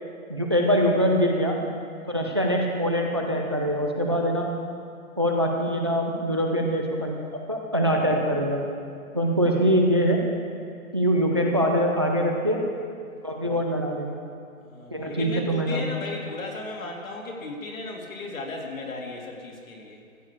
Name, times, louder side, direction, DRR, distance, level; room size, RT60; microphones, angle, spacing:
voice 1, 0.3-1.6 2.1-4.5 5.2-7.2 7.5-8.6 9.1-10.2 10.9-12.6 13.2-14.1 14.9-15.8, equal, 20° right, 1 dB, 0.4 m, -23 dB
voice 2, 14.6-20.0, left 2 dB, 70° left, -1 dB, 3.0 m, -35 dB
14.5 x 6.6 x 8.3 m, 2.3 s
hypercardioid pair, 165°, 42 cm